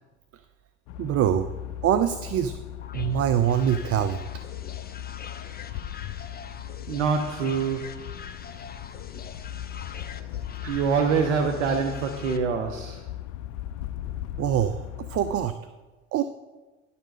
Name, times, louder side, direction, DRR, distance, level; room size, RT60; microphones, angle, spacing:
sound 1, 0.9-15.5, left 12 dB, 65° left, 0.6 m, -38 dB
voice 1, 1.0-1.5 1.8-2.5 2.9-4.2 10.6-10.8 14.4-15.6 16.1-16.2, right 10 dB, 40° right, 12 dB, 0.5 m, -24 dB
sound 2, 2.8-12.4, left 6 dB, 25° left, 0.7 m, -44 dB
voice 2, 6.9-7.9 10.7-13.0, right 5 dB, 80° right, 5 dB, 0.7 m, -25 dB
10.5 x 6.8 x 5.0 m, 1.2 s
hypercardioid pair, 55°, 36 cm